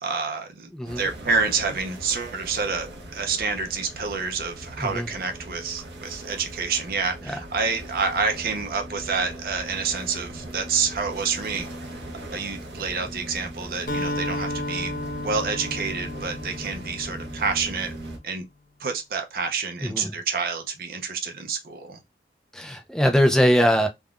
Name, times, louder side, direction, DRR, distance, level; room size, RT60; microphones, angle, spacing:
voice 1, 0.0-0.7 1.0-11.7 12.3-15.0 15.2-17.9 18.2-18.5 18.8-22.0, right 4 dB, 55° right, 0.5 m, -28 dB
voice 2, 0.7-1.1 4.8-5.1 7.3-7.4 19.8-20.2 22.5-23.9, equal, 5° left, 0.3 m, -21 dB
sound 1, 0.8-18.2, right 1 dB, 85° right, 0.8 m, -39 dB
Acoustic guitar, 13.9-17.7, left 1 dB, 50° left, 0.6 m, -32 dB
3.5 x 2.2 x 2.4 m
head